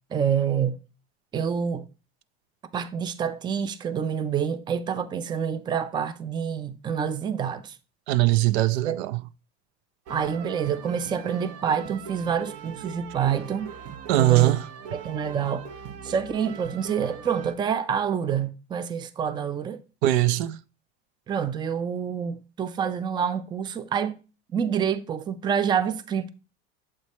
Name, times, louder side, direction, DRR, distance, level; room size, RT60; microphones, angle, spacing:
voice 1, 0.1-0.8 1.3-1.9 2.7-7.8 8.8-9.0 10.1-13.7 14.2-14.6 14.9-15.7 16.0-19.8 21.3-24.2 24.5-26.3, right 7 dB, 15° right, 0.3 m, -27 dB
voice 2, 8.1-9.2 14.1-14.6 20.0-20.6, right 16 dB, 85° right, 0.5 m, -21 dB
sound 1, 10.1-17.6, right 7 dB, 50° right, 0.7 m, -40 dB
7.4 x 3.1 x 4.1 m
supercardioid pair, 115°, 31 cm